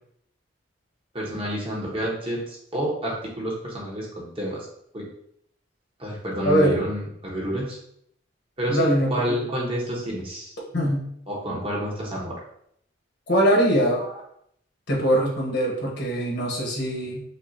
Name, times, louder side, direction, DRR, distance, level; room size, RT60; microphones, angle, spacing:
voice 1, 1.1-4.7 4.9-5.1 6.0-7.8 8.6-10.5 11.3-12.4 14.0-14.1, equal, 30° right, -4 dB, 1.0 m, -29 dB
voice 2, 6.4-6.8 8.7-9.1 10.7-11.1 13.3-14.0 14.9-17.2, equal, 60° left, -3 dB, 1.2 m, -22 dB
5.3 x 2.4 x 2.7 m, 0.70 s
head